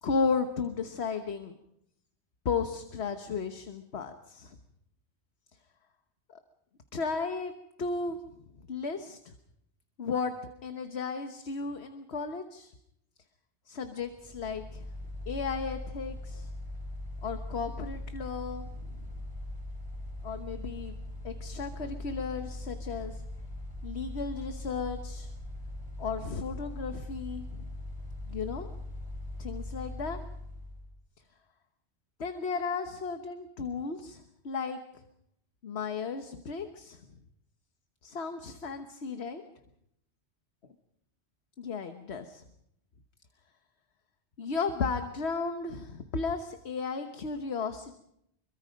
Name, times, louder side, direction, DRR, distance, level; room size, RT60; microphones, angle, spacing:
voice 1, 0.0-1.5 2.4-4.6 6.9-7.5 7.8-8.2 8.7-9.3 10.0-10.3 10.6-12.7 13.7-14.8 15.3-16.5 17.2-19.0 20.2-21.0 21.2-23.2 23.8-25.3 26.0-27.7 28.3-28.7 29.4-30.2 32.2-34.8 35.6-37.0 38.0-39.4 41.6-42.4 44.4-48.0, left 5 dB, 65° left, 7 dB, 1.4 m, -34 dB
Mechanical fan, 14.1-30.9, left 1 dB, 5° right, 6.7 m, -40 dB
25.5 x 23.5 x 5.2 m, 0.77 s
omnidirectional pair, 1.2 m